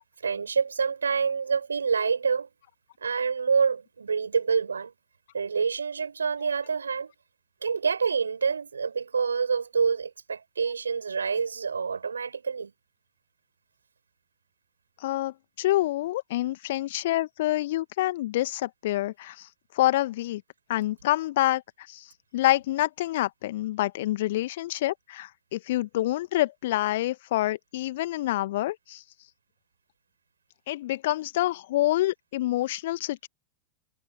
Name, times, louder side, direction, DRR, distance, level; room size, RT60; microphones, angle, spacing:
voice 1, 0.2-2.5 3.0-4.9 5.3-7.1 7.6-12.7, right 5 dB, 75° right, 7.0 m, -27 dB
voice 2, 15.0-19.4 19.8-20.4 20.7-21.6 21.9-22.0 22.3-29.0 30.7-33.3, left 15 dB, 55° left, 1.8 m, -27 dB
figure-of-eight pair, 90°, 0 cm